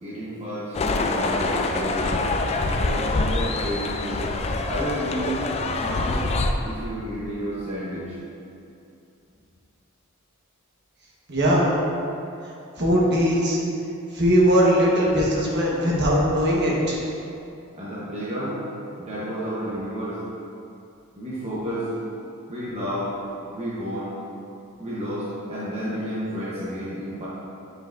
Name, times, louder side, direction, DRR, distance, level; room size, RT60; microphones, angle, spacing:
voice 1, 0.0-2.3 2.8-4.3 4.7-5.5 5.8-6.3 6.6-8.1 17.7-18.6 19.0-20.2 21.2-21.9 22.5-23.1 23.5-24.2 24.8-27.3, equal, 30° right, -9 dB, 0.9 m, -31 dB
sound 1, 0.7-6.5, left 2 dB, 30° left, 0.3 m, -25 dB
voice 2, 11.3-11.7 12.8-13.6 14.1-17.0, equal, 55° right, -5 dB, 1.3 m, -20 dB
7.7 x 5.4 x 2.6 m, 2.7 s
head